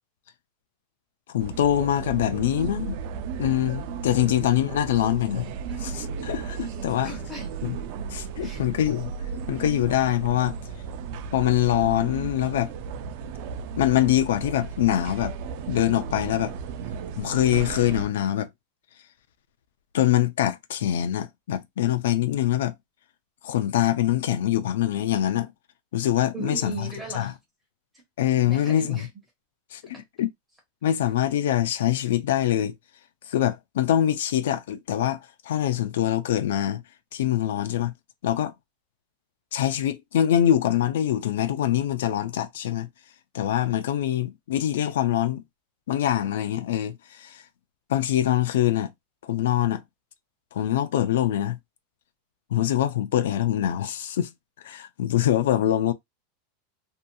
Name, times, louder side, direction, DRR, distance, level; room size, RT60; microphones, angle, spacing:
voice 1, 1.3-3.0 3.4-5.5 5.8-7.1 7.6-7.7 8.1-9.1 9.5-10.6 11.3-12.7 13.8-15.4 15.7-16.5 17.2-18.5 19.9-22.7 23.4-25.5 25.9-26.7 27.1-27.3 28.2-29.0 29.7-30.3 30.8-32.7 33.3-35.2 35.4-36.8 37.1-37.9 38.2-38.5 39.5-42.9 43.3-45.4 45.9-47.4 47.9-48.9 49.2-49.8 50.5-51.6 52.5-54.3 54.6-55.9, left 12 dB, 85° left, 0.4 m, -24 dB
sound 1, 1.4-18.1, right 6 dB, 50° right, 0.3 m, -35 dB
voice 2, 5.4-5.9 7.0-7.6 8.4-8.6 26.3-27.4 27.9-28.0 28.5-29.1, right 2 dB, 5° right, 1.2 m, -37 dB
2.7 x 2.6 x 2.2 m
supercardioid pair, 165°, 0 cm